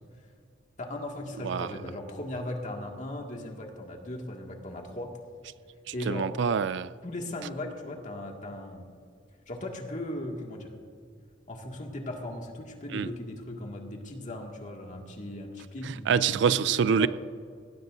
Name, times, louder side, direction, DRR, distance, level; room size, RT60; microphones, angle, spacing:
voice 1, 0.8-5.1 5.9-6.3 7.0-8.9 9.5-10.7 11.5-17.1, left 1 dB, 40° left, 1.9 m, -38 dB
voice 2, 6.1-6.9 12.9-13.1 16.1-17.1, right 7 dB, 65° right, 0.4 m, -25 dB
19.5 x 17.0 x 2.6 m
head